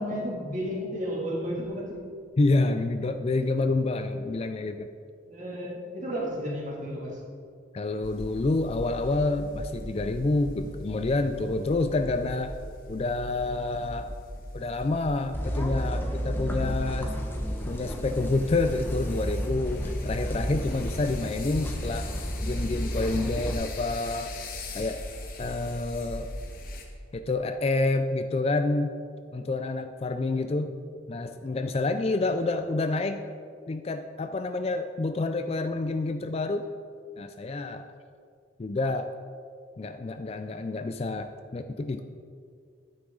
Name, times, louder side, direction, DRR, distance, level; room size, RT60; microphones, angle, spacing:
voice 1, 0.0-2.1 5.3-7.2, equal, 40° right, -4 dB, 2.4 m, -32 dB
voice 2, 2.4-4.9 7.7-12.5 12.9-14.1 14.5-17.1 17.7-22.1 22.4-24.3 24.7-25.1 25.4-26.3 27.1-28.9 29.3-30.7 31.1-33.2 33.7-36.7 37.2-37.9 38.6-39.1 39.8-42.0, left 2 dB, 30° left, 8 dB, 0.3 m, -28 dB
sound 1, 8.0-26.8, left 1 dB, 45° left, 1.2 m, -40 dB
sound 2, 15.3-23.5, equal, 10° left, 0.9 m, -32 dB
11.5 x 9.7 x 3.8 m, 2.3 s
head